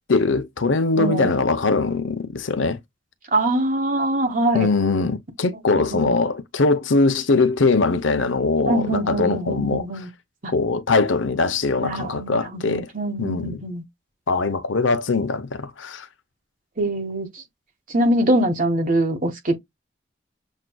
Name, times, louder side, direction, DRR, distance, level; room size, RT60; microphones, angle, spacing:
voice 1, 0.1-2.8 4.5-9.8 10.5-12.9 13.2-13.6 14.3-16.1, left 3 dB, 90° left, 0.8 m, -21 dB
voice 2, 1.0-1.4 3.3-4.7 5.8-6.2 8.7-10.1 10.4-10.5 11.8-13.8 16.8-17.4 17.9-19.6, right 1 dB, 45° right, 1.1 m, -23 dB
7.3 x 2.5 x 2.2 m
head